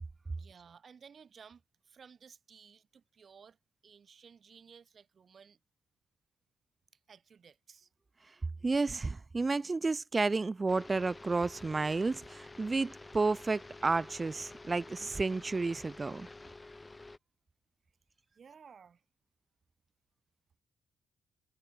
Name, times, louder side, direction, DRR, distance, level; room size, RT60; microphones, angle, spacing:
voice 1, 0.3-3.6 3.8-5.6 7.1-7.9 18.3-19.0, right 6 dB, 45° right, 7.9 m, -56 dB
voice 2, 8.6-16.3, right 3 dB, 25° right, 1.3 m, -31 dB
sound 1, 10.7-17.2, left 2 dB, 15° left, 2.5 m, -50 dB
cardioid pair, 90°, 0 cm